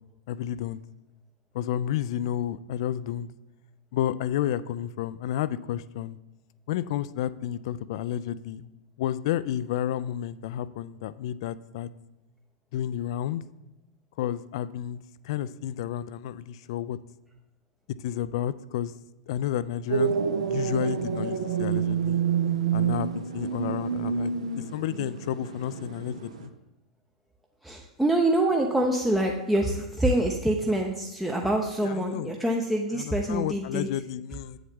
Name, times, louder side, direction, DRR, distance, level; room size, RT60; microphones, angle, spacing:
voice 1, 0.3-0.8 1.5-3.3 3.9-6.2 6.7-8.7 9.0-11.9 12.7-13.4 14.2-15.0 15.2-17.0 18.0-18.9 19.3-20.2 20.4-22.2 22.7-24.3 24.6-26.5 31.8-32.4 32.9-34.6, left 11 dB, 50° left, 17 dB, 0.3 m, -31 dB
sound 1, 19.9-26.5, right 7 dB, 65° right, 0.7 m, -28 dB
voice 2, 27.6-33.9, right 1 dB, 5° right, 1 dB, 0.6 m, -25 dB
8.2 x 7.0 x 3.6 m, 0.93 s
figure-of-eight pair, 90°, 4 cm